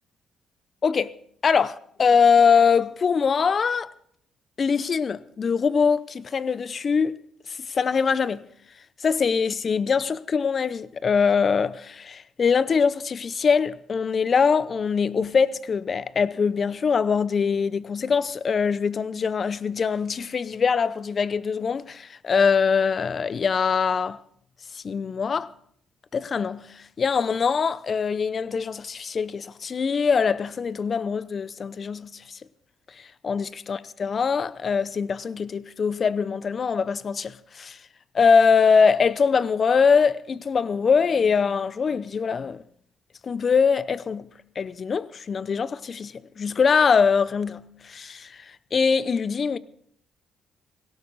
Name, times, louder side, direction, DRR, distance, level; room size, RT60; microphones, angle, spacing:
voice 1, 0.8-1.1 1.4-3.9 4.6-7.2 7.5-8.5 9.0-24.2 24.7-25.5 26.1-32.4 33.2-37.8 38.1-42.6 43.2-44.3 44.6-49.6, left 5 dB, 45° left, 0.6 m, -23 dB
18.0 x 17.5 x 4.1 m
cardioid pair, 90°, 0 cm